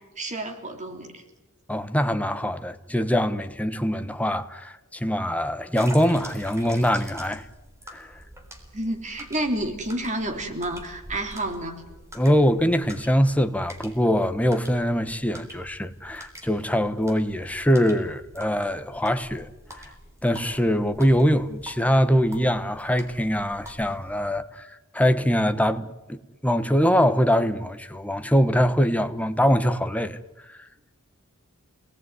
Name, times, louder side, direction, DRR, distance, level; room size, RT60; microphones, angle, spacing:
voice 1, 0.2-1.2 8.7-11.9, right 1 dB, 35° right, 3.2 m, -30 dB
voice 2, 1.7-7.4 7.9-8.1 12.1-19.5 19.8-19.9 20.2-24.7 24.9-30.2, equal, 5° left, 1.2 m, -23 dB
sound 1, 5.7-24.1, equal, 15° right, 4.1 m, -46 dB
28.0 x 19.5 x 9.6 m
head